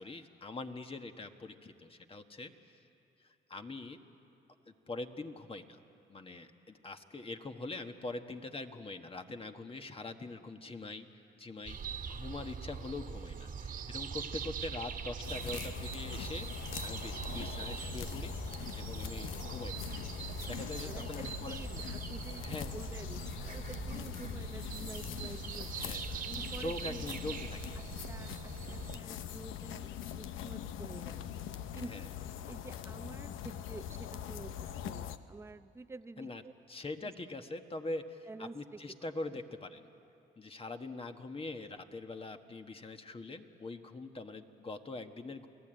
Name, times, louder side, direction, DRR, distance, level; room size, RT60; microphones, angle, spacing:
voice 1, 0.0-2.8 3.2-4.0 4.7-5.8 6.1-11.1 11.4-11.8 12.1-18.3 18.7-20.0 20.5-21.6 22.4-22.7 25.7-26.1 26.6-27.8 31.9-32.1 36.2-36.4 36.7-39.9 40.4-45.5, left 2 dB, 30° left, 6 dB, 1.4 m, -43 dB
sound 1, 11.7-29.0, right 6 dB, 45° right, 1.6 m, -42 dB
sound 2, 15.2-35.2, left 9 dB, 85° left, 0.8 m, -42 dB
voice 2, 20.4-25.7 26.2-27.1 27.8-31.4 31.7-32.1 32.5-36.5 37.0-37.1 38.3-38.8, right 3 dB, 15° right, 11 dB, 0.7 m, -49 dB
28.5 x 18.0 x 9.0 m, 2.7 s
cardioid pair, 90°, 20 cm